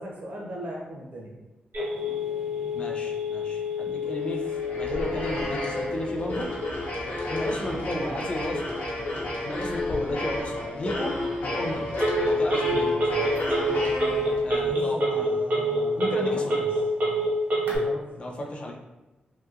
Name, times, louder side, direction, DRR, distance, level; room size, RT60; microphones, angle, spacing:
voice 1, 0.0-1.3 7.6-8.3 9.6-9.7 14.6-16.7 17.8-18.0, right 1 dB, 55° right, -2 dB, 0.6 m, -38 dB
Telephone, 1.7-17.8, right 1 dB, 80° right, 1.2 m, -29 dB
voice 2, 2.7-6.5 7.3-8.6 9.4-11.9 12.3-13.3 14.4-15.3 16.0-16.6 18.2-18.8, left 1 dB, 35° left, 0 dB, 0.4 m, -34 dB
sound 1, 4.2-14.7, left 2 dB, 70° left, 0.8 m, -31 dB
3.1 x 2.8 x 2.4 m, 1.1 s
wide cardioid pair, 170°, 3 cm